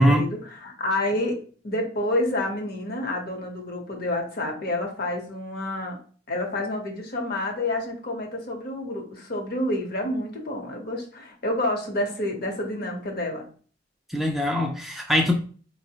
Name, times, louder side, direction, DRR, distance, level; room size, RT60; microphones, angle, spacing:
voice 1, 0.0-1.4 1.6-6.0 6.3-13.4, left 1 dB, 55° left, 2 dB, 0.8 m, -29 dB
voice 2, 14.1-15.3, equal, ahead, 0 dB, 0.3 m, -21 dB
4.0 x 2.0 x 2.7 m, 0.42 s
head